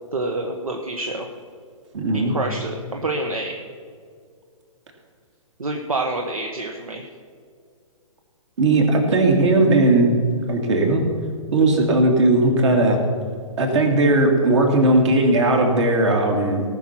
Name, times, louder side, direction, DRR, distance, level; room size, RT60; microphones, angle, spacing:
voice 1, 0.1-1.3 2.1-3.6 5.6-7.1, right 2 dB, 75° right, 3 dB, 1.2 m, -27 dB
voice 2, 1.9-2.3 8.6-10.1 10.5-11.0 11.5-13.0 13.6-16.6, right 2 dB, 55° right, 2 dB, 2.7 m, -17 dB
18.5 x 6.3 x 5.9 m, 2.1 s
figure-of-eight pair, 125°, 18 cm